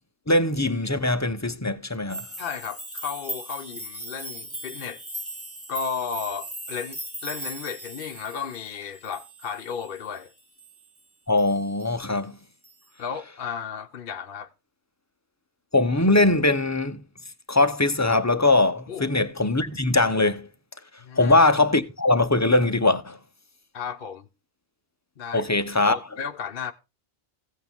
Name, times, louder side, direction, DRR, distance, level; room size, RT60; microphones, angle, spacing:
voice 1, 0.3-2.2 11.3-12.4 15.7-17.0 17.5-20.5 21.2-23.2 25.3-26.0, left 2 dB, 20° left, 0.6 m, -21 dB
sound 1, 2.1-11.0 11.4-12.0 12.6-12.7, right 1 dB, 10° right, 1.4 m, -39 dB
voice 2, 2.4-5.0 5.7-10.3 13.0-14.5 18.9-19.1 21.0-21.4 23.7-24.3 25.2-25.5 25.8-26.7, left 6 dB, 55° left, 0.8 m, -34 dB
15.5 x 8.5 x 3.6 m
omnidirectional pair, 1.1 m